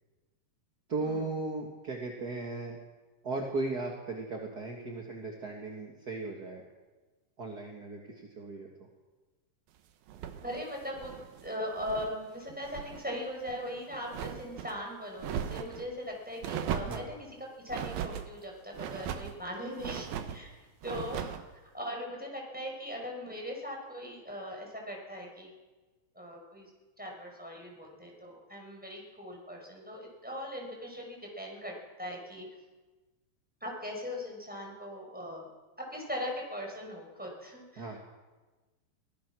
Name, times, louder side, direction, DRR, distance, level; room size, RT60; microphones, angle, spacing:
voice 1, 0.9-2.8 3.2-6.6 7.4-8.9 16.9-17.1 37.8-38.0, right 3 dB, 40° right, 0 dB, 1.5 m, -36 dB
sound 1, 10.1-12.2 12.5-13.0 13.4-14.7 15.2-15.8 16.4-17.1 17.7-18.3 18.7-19.4 19.8-20.4 20.8-21.5, right 9 dB, 70° right, 2.8 m, -38 dB
voice 2, 10.4-11.1 11.4-17.2 17.6-21.4 21.7-25.5 26.2-26.7 27.0-32.4 33.6-35.5 35.8-37.9, equal, ahead, 0 dB, 5.3 m, -40 dB
24.0 x 18.5 x 6.3 m, 1.2 s
omnidirectional pair, 4.6 m